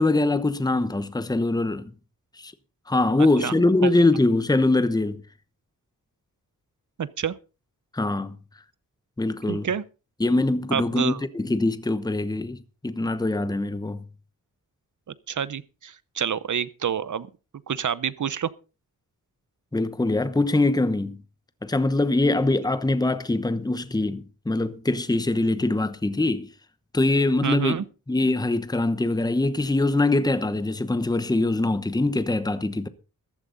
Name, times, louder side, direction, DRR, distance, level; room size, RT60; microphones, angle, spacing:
voice 1, 0.0-1.9 2.4-2.5 2.9-5.2 7.9-8.4 9.2-9.7 10.2-12.6 12.8-14.0 19.7-21.2 21.6-26.5 26.9-27.8 28.1-32.9, left 2 dB, 10° left, 0.9 m, -23 dB
voice 2, 3.2-3.5 3.8-4.0 7.0-7.3 9.5-9.8 10.7-11.2 15.3-17.3 17.7-18.5 27.4-27.8, right 8 dB, 60° right, 0.8 m, -28 dB
14.5 x 12.0 x 3.9 m
wide cardioid pair, 105°, 35 cm